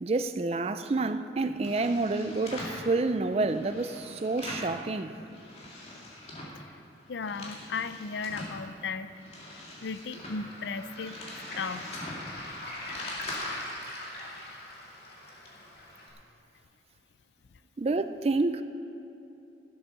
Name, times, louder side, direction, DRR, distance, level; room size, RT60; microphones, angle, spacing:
voice 1, 0.0-5.1 17.8-18.6, right 3 dB, 35° right, 0.4 m, -28 dB
sound 1, 1.4-2.8 3.3-4.8 5.1-6.6 7.0-8.6 9.0-13.3, left 1 dB, 35° left, 2.3 m, -43 dB
voice 2, 7.1-9.1 9.8-11.2 11.5-11.9, left 4 dB, 75° left, 0.5 m, -35 dB
Waves surf, 10.1-16.1, left 1 dB, 60° left, 2.5 m, -41 dB
15.0 x 8.2 x 6.2 m
head